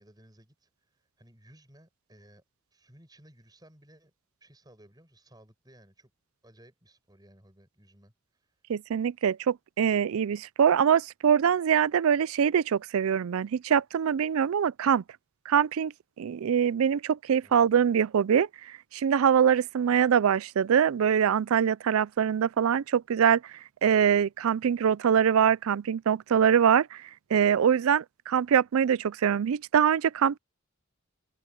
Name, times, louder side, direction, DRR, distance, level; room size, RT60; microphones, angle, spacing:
voice 1, 0.0-2.4 2.7-4.1 4.4-6.1 6.4-8.6 17.4-17.8, right 1 dB, 20° right, 7.9 m, -58 dB
voice 2, 8.7-15.0 15.5-15.9 16.2-18.5 18.9-27.0 27.3-30.4, right 8 dB, 80° right, 0.4 m, -24 dB
head